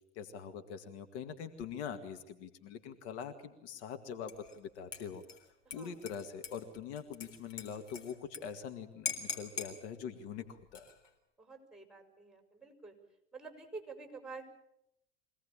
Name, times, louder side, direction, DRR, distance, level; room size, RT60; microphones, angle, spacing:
voice 1, 0.2-5.2 5.7-10.9, left 7 dB, 65° left, 8 dB, 2.1 m, -43 dB
Dishes pots and pans / Liquid, 4.3-4.6 4.9-8.4 8.7-8.8 9.1-9.7 10.6-11.1, left 6 dB, 80° left, 3.9 m, -42 dB
voice 2, 5.7-6.0 11.4-12.9 13.3-14.4, right 4 dB, ahead, 4 dB, 5.5 m, -48 dB
25.0 x 18.0 x 8.7 m, 0.80 s
hypercardioid pair, 85°, 36 cm